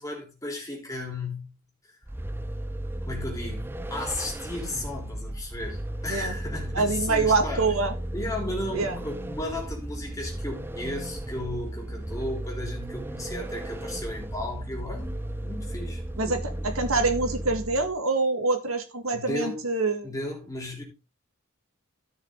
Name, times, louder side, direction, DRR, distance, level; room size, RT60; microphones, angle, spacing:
voice 1, 0.0-1.6 1.8-2.0 3.1-7.7 8.1-16.4 19.1-19.7 20.0-20.8, left 1 dB, 15° left, 3.4 m, -35 dB
Vehicle, 2.0-18.0, right 1 dB, 10° right, 0.5 m, -34 dB
voice 2, 6.7-7.9 8.7-9.0 16.2-20.1, right 3 dB, 80° right, 1.9 m, -25 dB
14.5 x 6.1 x 3.8 m
head